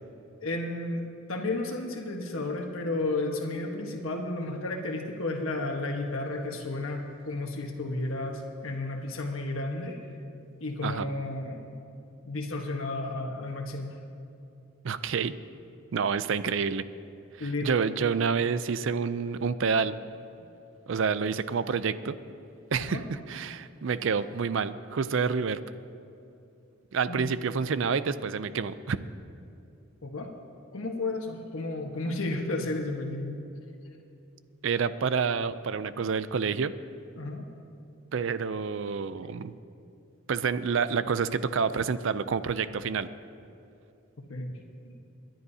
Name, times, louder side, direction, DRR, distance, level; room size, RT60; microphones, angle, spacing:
voice 1, 0.4-1.0 1.3-10.0 10.6-11.7 12.2-13.9 17.4-17.7 22.8-23.0 27.1-27.2 30.0-30.3 30.7-33.4 37.2-37.5 44.3-44.6, left 2 dB, 80° left, 2 dB, 1.3 m, -32 dB
voice 2, 14.8-15.3 15.9-16.8 17.4-19.9 20.9-22.1 22.7-25.6 26.9-29.0 34.6-36.7 38.1-39.5 40.3-43.1, right 5 dB, 65° right, 14 dB, 0.4 m, -28 dB
27.5 x 10.5 x 2.8 m, 2.7 s
head